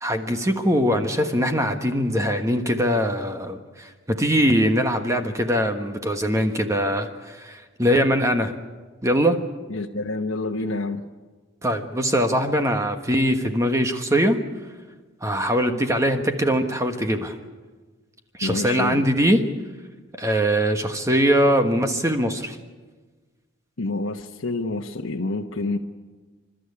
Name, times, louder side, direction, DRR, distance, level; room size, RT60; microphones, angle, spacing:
voice 1, 0.0-8.5 9.0-9.4 11.6-14.4 15.2-17.4 18.4-19.4 20.2-22.6, equal, 15° right, 6 dB, 1.3 m, -22 dB
voice 2, 9.7-11.0 18.4-19.0 23.8-25.8, left 2 dB, 70° left, 1 dB, 1.1 m, -28 dB
28.5 x 13.0 x 9.8 m, 1.4 s
head